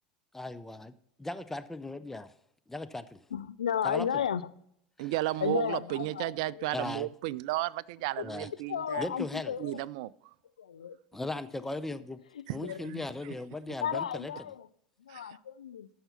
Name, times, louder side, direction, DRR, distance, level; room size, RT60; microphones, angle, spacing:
voice 1, 0.3-2.3 2.7-3.2 3.8-4.1 5.0-5.1 6.7-7.1 8.2-8.5 9.0-9.6 11.1-12.2 12.5-14.3, left 2 dB, 10° left, 0.5 m, -38 dB
voice 2, 3.3-4.5 5.4-6.7 8.2-8.3 8.7-9.8 10.6-11.0 12.3-13.1 13.8-14.7 15.0-15.9, left 8 dB, 75° left, 0.4 m, -34 dB
voice 3, 5.0-9.1 9.6-10.1 12.5-12.6 15.1-15.2, right 16 dB, 60° right, 0.3 m, -33 dB
13.5 x 5.7 x 4.0 m
figure-of-eight pair, 75°, 4 cm